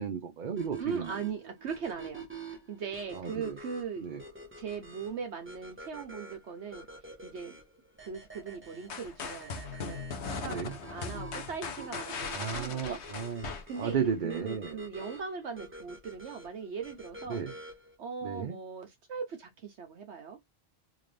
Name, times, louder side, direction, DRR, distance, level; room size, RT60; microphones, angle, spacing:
voice 1, 0.0-1.1 3.1-3.6 4.0-4.2 10.5-10.7 12.3-14.8 17.3-17.5 18.2-18.6, right 6 dB, 45° right, 0.7 m, -34 dB
sound 1, 0.6-18.0, right 2 dB, 10° right, 0.9 m, -48 dB
voice 2, 0.8-4.0 4.6-6.9 7.2-7.6 8.0-10.6 10.9-13.0 13.4-17.4 18.0-20.4, right 6 dB, 65° right, 1.1 m, -40 dB
sound 2, 8.9-14.2, left 5 dB, 65° left, 1.1 m, -39 dB
3.8 x 2.5 x 3.2 m
omnidirectional pair, 1.3 m